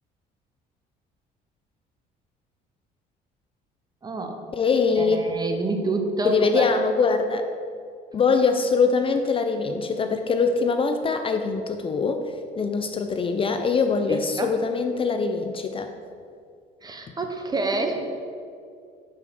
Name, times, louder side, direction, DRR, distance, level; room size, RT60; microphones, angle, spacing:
voice 1, 4.0-4.4 5.0-6.7 14.1-14.5 16.8-18.2, right 2 dB, 25° right, 5 dB, 0.8 m, -28 dB
voice 2, 4.5-5.2 6.2-7.5 8.1-15.9, left 4 dB, 30° left, 6 dB, 0.4 m, -23 dB
5.5 x 4.8 x 6.2 m, 2.3 s
cardioid pair, 110°, 17 cm